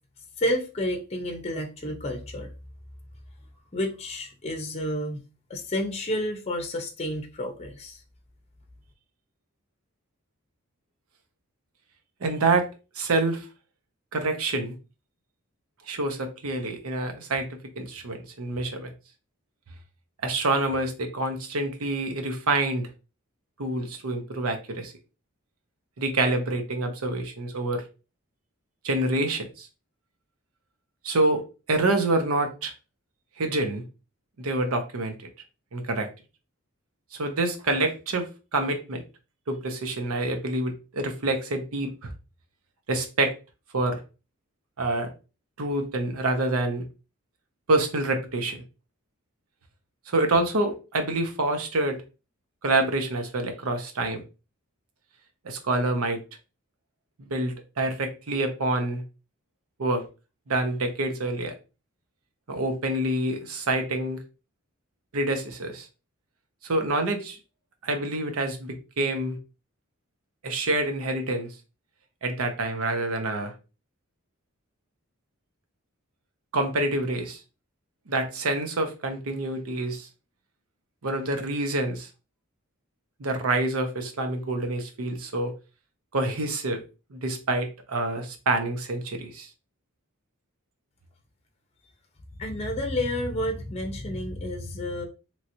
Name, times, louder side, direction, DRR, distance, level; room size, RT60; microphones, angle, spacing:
voice 1, 0.4-2.5 3.7-5.2 5.5-8.0 92.4-95.1, left 1 dB, 30° left, 0.6 m, -30 dB
voice 2, 12.2-12.7 13.0-13.5 14.1-14.7 15.9-18.9 20.2-22.9 23.6-24.9 26.0-27.8 28.8-29.7 31.0-31.4 31.7-32.7 33.4-33.8 34.4-35.2 35.7-36.1 37.1-39.0 39.5-42.1 42.9-43.3 43.7-44.0 44.8-45.1 45.6-46.8 47.7-48.6 50.1-52.0 52.6-54.2 55.4-56.2 57.2-59.0 59.8-60.0 60.5-61.5 62.5-64.2 65.1-65.9 66.6-67.4 67.8-69.4 70.4-71.5 72.2-73.5 76.5-77.4 78.1-80.1 81.0-82.1 83.2-85.5 86.1-86.8 87.1-89.5, right 2 dB, 80° right, 0.7 m, -27 dB
3.0 x 2.8 x 2.6 m
head